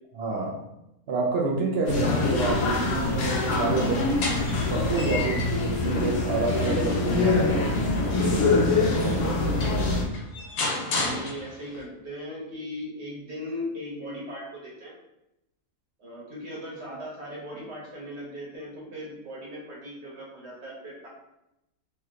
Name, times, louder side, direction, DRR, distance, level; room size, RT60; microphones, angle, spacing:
voice 1, 0.2-0.6 1.1-7.7 8.1-9.5, right 3 dB, 75° right, -1 dB, 0.5 m, -29 dB
sound 1, 1.9-10.0, left 3 dB, 65° left, 0.8 m, -24 dB
voice 2, 3.7-4.5 9.4-10.0 10.8-14.9 16.0-21.1, equal, 50° right, -5 dB, 1.3 m, -38 dB
sound 2, 3.8-5.7 6.2-8.8 9.3-9.4 9.6-11.8, left 3 dB, 90° left, 1.2 m, -34 dB
3.1 x 2.8 x 2.4 m, 0.88 s
omnidirectional pair, 1.6 m